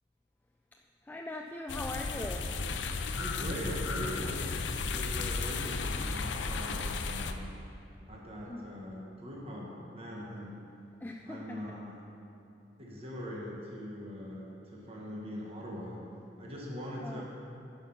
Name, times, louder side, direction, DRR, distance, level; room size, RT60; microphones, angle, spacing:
voice 1, 0.7-2.5 8.5-8.7 11.0-11.6 17.0-17.2, left 1 dB, 10° left, 2 dB, 0.3 m, -41 dB
sound 1, 1.7-7.3, left 4 dB, 85° left, 0.5 m, -34 dB
voice 2, 3.1-4.6 4.9-7.5 8.1-10.6 11.2-12.0 12.8-16.0 16.4-17.2, equal, 35° right, -4 dB, 1.3 m, -41 dB
10.0 x 5.8 x 5.8 m, 2.6 s
head